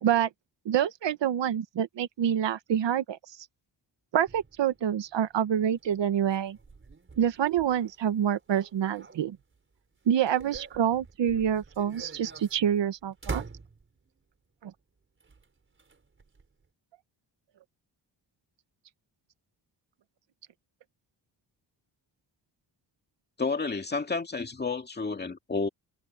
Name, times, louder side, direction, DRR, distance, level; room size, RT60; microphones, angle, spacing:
voice 1, 0.6-3.2 4.1-6.6 7.2-9.4 10.1-13.4 14.6-14.7, right 9 dB, 80° right, 1.3 m, -27 dB
sound 1, 4.3-9.6 10.0-14.2 15.2-16.7, right 4 dB, 30° right, 5.9 m, -45 dB
voice 2, 23.4-25.7, left 4 dB, 25° left, 2.1 m, -30 dB
wide cardioid pair, 170°, 43 cm